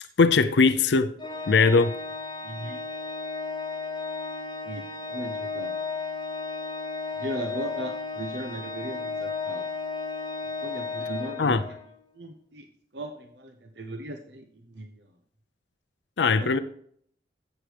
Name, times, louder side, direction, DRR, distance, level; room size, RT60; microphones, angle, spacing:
voice 1, 0.2-1.1 1.5-1.9 11.4-11.6 16.2-16.6, left 4 dB, 70° left, 0.5 m, -20 dB
Organ, 1.2-12.0, left 4 dB, 25° left, 0.8 m, -34 dB
voice 2, 2.4-2.8 4.6-5.7 7.2-9.6 10.6-11.6 12.1-12.7 12.9-15.1 16.4-16.6, right 1 dB, 65° right, 0.8 m, -37 dB
14.0 x 8.3 x 3.4 m
head